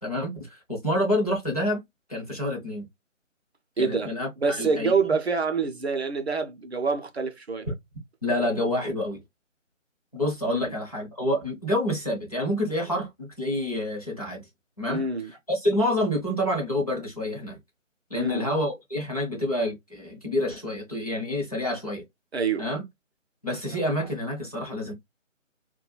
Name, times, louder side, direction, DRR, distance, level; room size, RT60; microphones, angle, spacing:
voice 1, 0.0-1.8 2.1-2.8 3.8-4.9 8.2-9.2 10.1-14.4 14.8-15.0 15.5-17.6 18.1-22.0 22.6-22.9 23.4-24.9, left 1 dB, 30° left, 0.6 m, -28 dB
voice 2, 3.8-7.7 10.5-10.7 14.9-15.3 18.1-18.5 22.3-22.7, right 4 dB, 55° right, 0.5 m, -26 dB
2.3 x 2.1 x 2.9 m
figure-of-eight pair, 155°, 39 cm